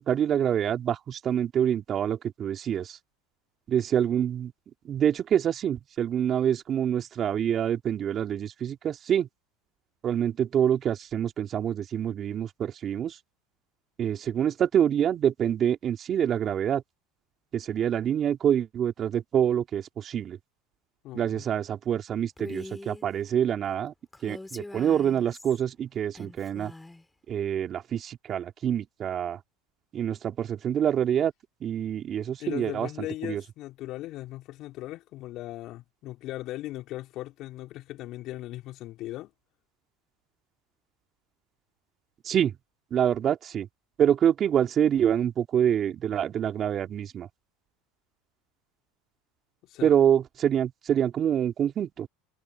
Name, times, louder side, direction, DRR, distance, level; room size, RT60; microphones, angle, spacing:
voice 1, 0.0-3.0 3.7-4.5 4.9-9.3 10.0-13.2 14.0-16.8 17.5-20.4 21.1-23.9 24.2-26.7 27.3-29.4 29.9-31.3 31.6-33.4 42.2-42.5 42.9-43.7 44.0-47.3 49.8-52.1, right 9 dB, 40° right, 3.3 m, -26 dB
voice 2, 21.0-21.4 32.4-39.3 49.6-49.9, left 16 dB, 55° left, 4.7 m, -38 dB
Female speech woman speaking, 22.4-23.1 24.1-25.6 26.1-27.0, left 2 dB, 10° left, 7.1 m, -42 dB
supercardioid pair, 105°, 0 cm